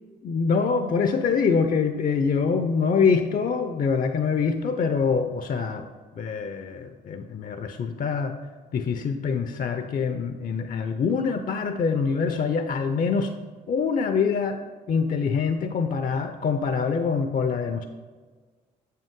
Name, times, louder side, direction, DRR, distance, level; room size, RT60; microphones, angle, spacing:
voice 1, 0.2-5.8 6.2-8.3 8.7-13.3 13.7-14.6 14.9-17.8, left 5 dB, 45° left, 8 dB, 0.5 m, -25 dB
6.9 x 5.5 x 3.6 m, 1.4 s
hypercardioid pair, 55°, 20 cm